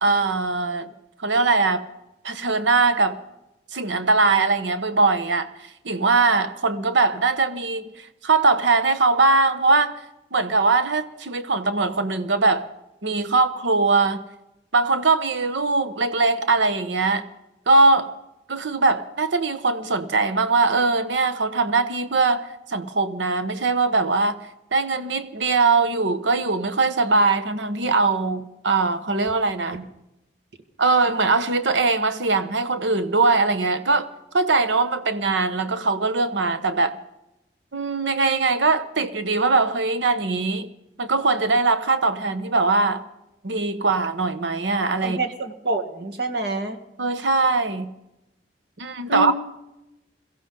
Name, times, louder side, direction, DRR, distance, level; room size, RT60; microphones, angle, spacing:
voice 1, 0.0-0.9 1.2-1.8 2.2-3.2 3.7-5.5 5.8-9.9 10.3-12.7 13.0-14.2 14.7-17.2 17.7-18.1 18.5-24.4 24.7-29.9 30.8-37.0 37.7-40.7 41.0-43.0 43.4-45.2 47.0-47.9 48.8-49.3, right 3 dB, 85° right, 1.0 m, -21 dB
voice 2, 45.0-46.8 49.1-49.3, right 2 dB, 60° right, 1.8 m, -26 dB
22.5 x 15.5 x 3.8 m
head